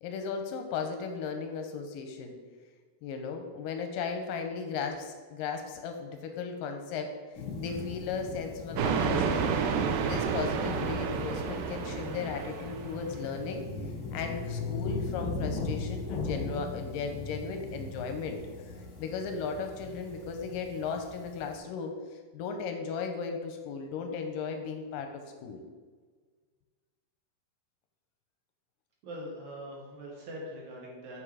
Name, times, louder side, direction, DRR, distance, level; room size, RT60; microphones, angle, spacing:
voice 1, 0.0-2.4 3.0-9.5 10.0-13.6 14.1-18.4 18.7-25.6, left 5 dB, 80° left, 5 dB, 2.1 m, -36 dB
sound 1, 7.3-21.6, left 3 dB, 55° left, 1.5 m, -39 dB
sound 2, 8.8-13.3, right 6 dB, 85° right, 2.3 m, -30 dB
voice 2, 29.0-31.2, equal, 60° right, -2 dB, 2.3 m, -42 dB
7.9 x 4.8 x 4.8 m, 1.5 s
omnidirectional pair, 4.3 m